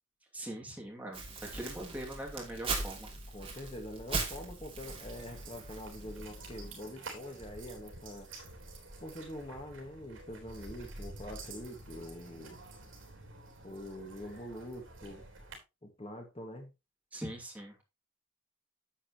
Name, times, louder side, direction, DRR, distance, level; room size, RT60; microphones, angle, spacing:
voice 1, 0.3-3.1 17.1-17.8, right 1 dB, 5° right, -1 dB, 2.5 m, -42 dB
Crumpling crinkling, 1.1-6.7, right 3 dB, 25° right, 2.7 m, -40 dB
voice 2, 3.3-8.3 9.0-12.6 13.6-15.2 15.8-16.7, left 1 dB, 30° left, 3 dB, 1.8 m, -45 dB
sound 1, 4.8-15.6, right 2 dB, 75° right, 3.7 m, -49 dB
10.5 x 7.6 x 3.0 m, 0.25 s
head